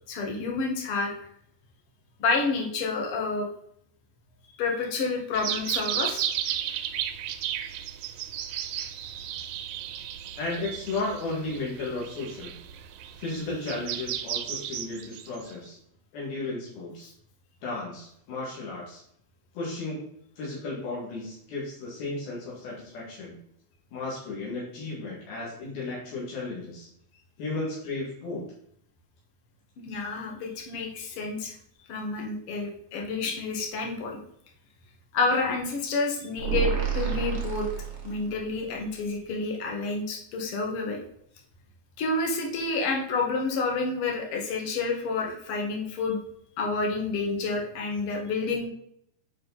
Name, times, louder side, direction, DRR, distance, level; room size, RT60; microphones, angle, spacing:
voice 1, 0.1-1.1 2.2-3.5 4.6-6.3 29.8-31.5 31.9-34.2 35.1-37.7 38.0-41.0 42.0-46.2 46.6-48.7, left 3 dB, 50° left, 1 dB, 1.8 m, -29 dB
sound 1, 5.3-15.5, right 10 dB, 85° right, 2.5 m, -34 dB
voice 2, 10.4-12.5 13.2-15.8 16.1-17.1 17.6-19.0 19.5-20.0 20.4-23.3 23.9-26.9 27.4-28.5, left 2 dB, 75° left, -5 dB, 4.0 m, -34 dB
sound 2, 36.4-38.5, right 8 dB, 70° right, 1.0 m, -29 dB
9.2 x 5.0 x 4.0 m, 0.69 s
omnidirectional pair, 4.4 m